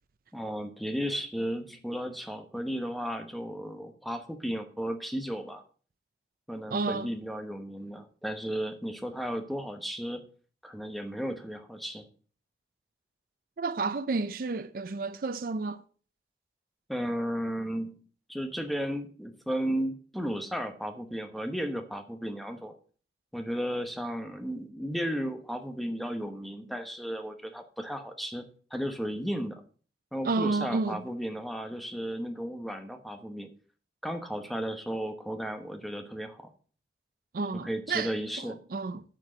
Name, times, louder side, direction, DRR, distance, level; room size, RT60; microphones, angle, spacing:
voice 1, 0.3-5.6 6.5-10.2 10.6-12.1 16.9-18.0 18.3-22.7 23.3-28.5 28.7-29.6 30.1-33.5 34.0-36.5 37.5-38.6, equal, ahead, 0.9 m, -34 dB
voice 2, 6.7-7.1 13.6-15.8 30.2-31.1 37.3-39.0, right 3 dB, 50° right, 0.4 m, -31 dB
8.8 x 4.5 x 7.4 m
head